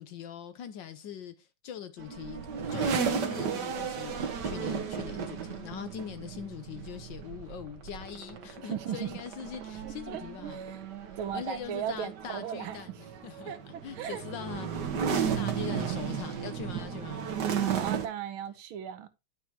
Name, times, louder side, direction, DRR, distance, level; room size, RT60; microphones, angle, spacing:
voice 1, 0.0-2.4 2.7-10.6 11.3-13.5 13.8-17.3, left 9 dB, 70° left, 1.2 m, -42 dB
sound 1, 2.0-18.1, right 7 dB, 55° right, 1.6 m, -34 dB
voice 2, 4.6-4.9 8.6-9.1 9.8-10.8 11.2-12.8 13.5-14.2 17.6-19.1, right 9 dB, 70° right, 1.5 m, -37 dB
10.5 x 6.0 x 2.8 m
omnidirectional pair, 2.4 m